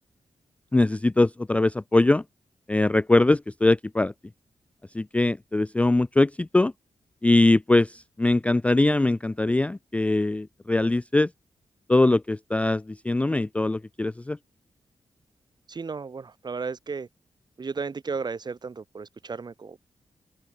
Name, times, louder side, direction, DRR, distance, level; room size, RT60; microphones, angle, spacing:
voice 1, 0.7-2.2 2.7-4.1 4.9-6.7 7.2-11.3 11.9-14.4, left 2 dB, 10° left, 0.4 m, -22 dB
voice 2, 15.7-17.1 17.6-19.8, right 5 dB, 40° right, 4.1 m, -34 dB
wide cardioid pair, 155°, 11 cm